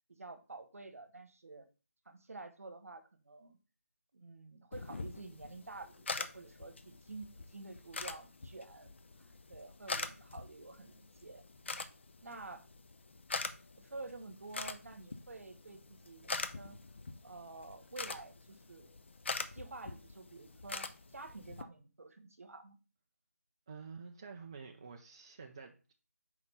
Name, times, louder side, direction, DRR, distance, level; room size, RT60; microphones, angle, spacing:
voice 1, 0.1-1.6 2.1-3.6 4.1-8.9 9.2-11.4 12.2-12.6 13.8-16.8 17.2-18.9 19.5-20.9 21.1-22.8, right 3 dB, 65° right, 9 dB, 1.2 m, -50 dB
sound 1, 4.7-21.6, left 4 dB, 50° left, 0.6 m, -44 dB
voice 2, 23.7-25.9, right 5 dB, 20° right, 2 dB, 0.4 m, -49 dB
4.8 x 4.3 x 5.5 m, 0.34 s
figure-of-eight pair, 165°, 8 cm